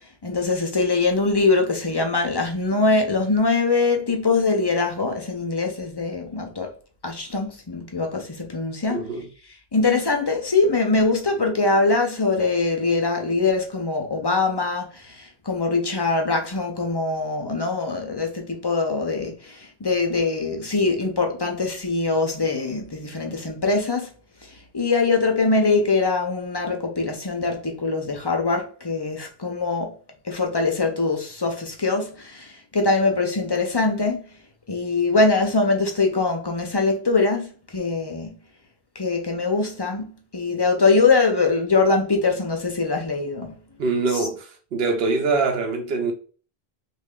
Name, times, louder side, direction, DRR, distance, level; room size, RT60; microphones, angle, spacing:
voice 1, 0.2-6.7 7.0-9.1 9.7-24.1 24.7-29.9 30.2-34.2 34.7-38.4 39.0-43.5 44.1-44.3, left 3 dB, 30° left, 0.5 m, -23 dB
voice 2, 8.9-9.3 43.8-46.1, right 4 dB, 75° right, 0.9 m, -24 dB
3.2 x 2.4 x 3.6 m
omnidirectional pair, 1.0 m